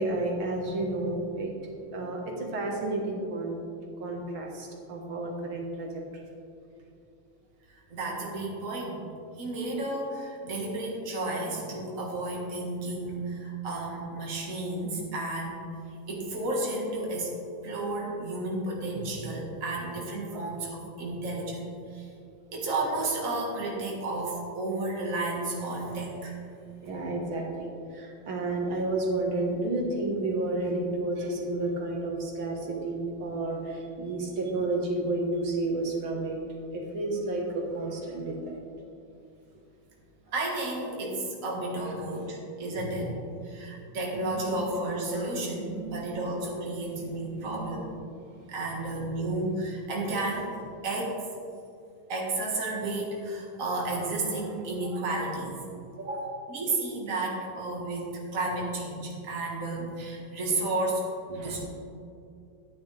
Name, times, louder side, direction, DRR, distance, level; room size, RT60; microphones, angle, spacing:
voice 1, 0.0-1.5 1.9-3.6 4.0-6.2 20.3-20.4 26.8-27.5 27.9-36.4 36.7-38.6 44.3-44.7 45.7-46.1 47.0-47.8 48.4-48.5 49.0-49.2 61.3-61.6, right 2 dB, 85° right, -1 dB, 2.3 m, -31 dB
voice 2, 7.7-9.1 9.4-15.6 16.1-17.3 17.6-22.1 22.5-26.4 40.3-43.1 43.4-47.9 48.5-50.5 50.8-51.2 52.1-55.6 56.0-61.0 61.4-61.6, right 2 dB, 40° right, -2 dB, 2.0 m, -32 dB
12.0 x 9.4 x 3.4 m, 2.5 s
omnidirectional pair, 2.2 m